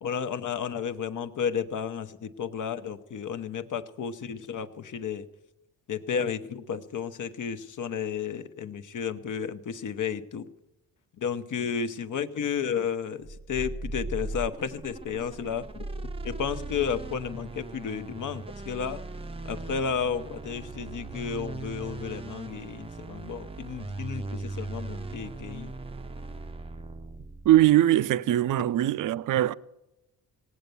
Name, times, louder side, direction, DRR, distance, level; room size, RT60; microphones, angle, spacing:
voice 1, 0.0-5.3 5.9-10.5 11.2-15.9 16.2-19.0 19.4-25.7, left 7 dB, 55° left, 1.0 m, -32 dB
sound 1, 13.2-27.8, right 2 dB, 15° right, 0.6 m, -38 dB
voice 2, 27.4-29.5, right 13 dB, 60° right, 0.5 m, -21 dB
18.0 x 8.0 x 6.9 m
cardioid pair, 80°, 36 cm